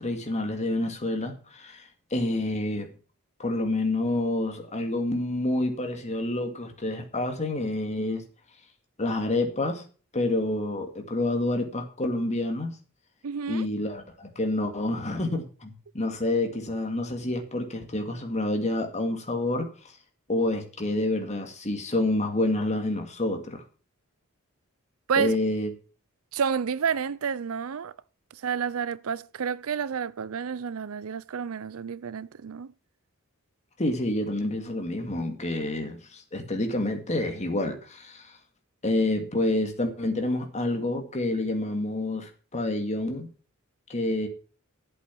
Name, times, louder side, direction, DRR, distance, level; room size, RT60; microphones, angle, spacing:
voice 1, 0.0-1.8 2.1-2.9 3.4-8.2 9.0-9.8 10.1-12.7 13.5-19.7 20.3-23.6 25.2-25.7 33.8-38.4 38.8-43.3 43.9-44.3, left 2 dB, 30° left, 2.2 m, -28 dB
voice 2, 13.2-13.7 25.1-25.4 26.3-27.9 28.3-32.7, right 6 dB, 70° right, 0.5 m, -30 dB
11.5 x 8.2 x 6.1 m
head